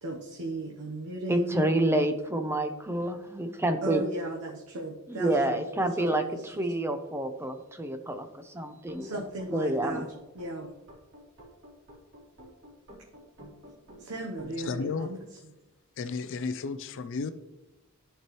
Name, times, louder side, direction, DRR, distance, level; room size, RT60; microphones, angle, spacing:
voice 1, 0.0-1.6 3.8-6.6 9.0-10.1 10.3-10.7 14.0-15.2, right 2 dB, 80° right, 0 dB, 0.9 m, -36 dB
voice 2, 1.3-4.0 5.1-9.2 9.5-10.1, right 1 dB, 10° right, 7 dB, 0.6 m, -28 dB
sound 1, 8.9-14.7, equal, 60° right, 2.6 m, -51 dB
voice 3, 14.6-15.1 16.0-17.3, left 4 dB, 55° left, 13 dB, 0.4 m, -33 dB
13.0 x 4.6 x 3.0 m, 1.0 s
head